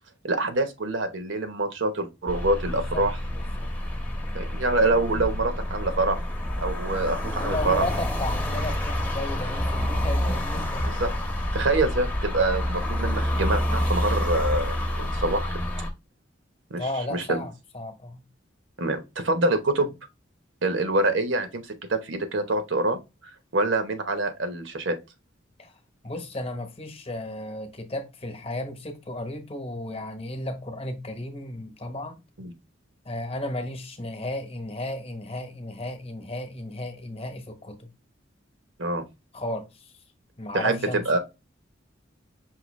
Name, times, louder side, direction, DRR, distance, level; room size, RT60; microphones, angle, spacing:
voice 1, 0.2-3.2 4.3-6.2 6.6-7.8 10.9-11.1 11.5-15.5 16.7-17.4 18.8-19.9 20.6-21.6 21.9-23.0 23.5-25.0 32.4-32.5 38.8-39.0 40.5-41.2, right 2 dB, 75° right, 0.9 m, -25 dB
sound 1, 2.3-15.9, left 1 dB, 10° left, 0.8 m, -28 dB
voice 2, 2.7-3.1 3.3-4.1 7.3-11.0 16.8-18.2 25.6-25.7 26.0-32.2 33.0-37.9 39.3-39.9 40.4-41.1, left 1 dB, 30° left, 1.0 m, -34 dB
5.6 x 2.9 x 3.1 m
head